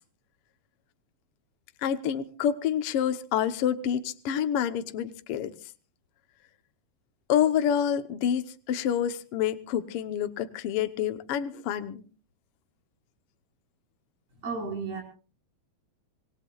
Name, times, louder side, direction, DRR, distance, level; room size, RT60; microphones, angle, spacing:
voice 1, 1.8-5.5 7.3-12.0, left 9 dB, 65° left, 9 dB, 1.6 m, -28 dB
voice 2, 14.4-15.0, right 4 dB, 70° right, 0 dB, 6.5 m, -33 dB
26.0 x 19.0 x 2.3 m, 0.39 s
omnidirectional pair, 3.4 m